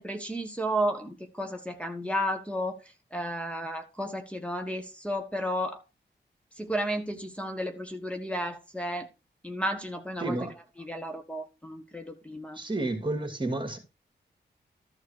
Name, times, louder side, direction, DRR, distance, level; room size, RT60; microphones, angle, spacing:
voice 1, 0.0-2.7 3.1-5.8 6.6-9.1 9.4-10.4 10.8-12.6, equal, 5° left, 1.5 m, -32 dB
voice 2, 10.2-10.5 12.5-13.8, right 2 dB, 25° right, 2.6 m, -30 dB
13.5 x 4.5 x 4.8 m
cardioid pair, 50°, 19 cm